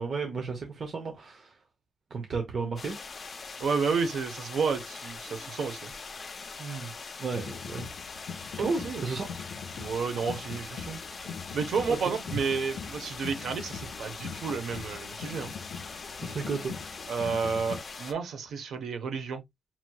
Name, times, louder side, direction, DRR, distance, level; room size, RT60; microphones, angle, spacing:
voice 1, 0.0-1.5 2.1-3.0 6.6-6.9 7.2-7.9 8.6-9.2 12.1-12.2 16.2-16.7, right 4 dB, 50° right, 1.0 m, -33 dB
sound 1, 2.8-18.1, left 4 dB, 40° left, 0.6 m, -42 dB
voice 2, 3.6-5.9 8.6-9.1 9.7-11.0 11.5-15.5 17.1-19.4, right 5 dB, 90° right, 0.8 m, -31 dB
sound 2, 7.3-17.8, left 6 dB, 80° left, 0.6 m, -42 dB
5.7 x 3.1 x 2.3 m
wide cardioid pair, 130°, 0 cm